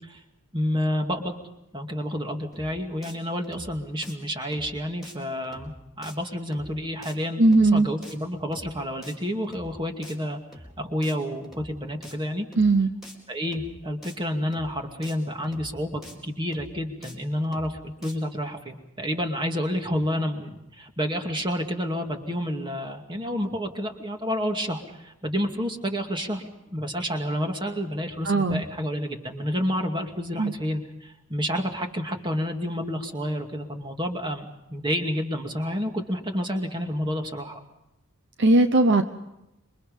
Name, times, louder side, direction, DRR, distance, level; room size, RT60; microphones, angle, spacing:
voice 1, 0.5-1.3 1.7-10.4 10.8-12.5 13.3-26.4 26.7-37.6, equal, 20° right, 3 dB, 2.4 m, -29 dB
sound 1, 2.5-2.7 3.0-3.2 3.4-3.7 4.0-4.1 4.5-4.7 5.0-5.2 5.4-5.7 6.0-6.2 6.5-6.7 7.0-7.2 7.4-7.7 8.0-8.2 8.5-8.7 9.0-9.1 9.4-9.7 10.0-10.2 10.5-10.7 11.0-11.2 11.4-11.7 12.0-12.2 12.5-12.7 13.0-13.2 13.4-13.7 14.0-14.2 14.5-14.7 15.0-15.2 15.4-15.7 16.0-16.1 16.5-16.7 17.0-17.2 17.4-17.7 18.0-18.1, left 1 dB, ahead, 4.5 m, -45 dB
voice 2, 7.4-7.9 12.6-12.9 28.2-28.6 30.4-30.5 38.4-39.0, right 2 dB, 55° right, 8 dB, 0.9 m, -18 dB
27.0 x 24.0 x 5.5 m, 0.90 s
head